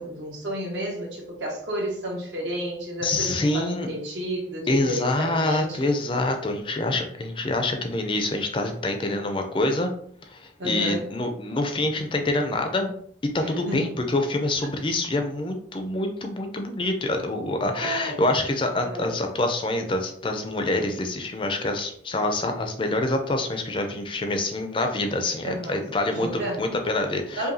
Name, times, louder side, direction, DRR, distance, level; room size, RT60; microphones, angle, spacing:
voice 1, 0.0-5.8 10.6-11.1 13.4-13.9 17.7-18.2 18.9-19.1 25.4-25.8 26.1-26.6 27.3-27.5, equal, 75° right, -1 dB, 1.2 m, -31 dB
voice 2, 3.0-3.9 4.7-9.9 10.3-12.9 13.3-26.3 26.6-27.5, left 2 dB, 30° left, 4 dB, 0.4 m, -26 dB
5.4 x 2.2 x 2.6 m, 0.62 s
head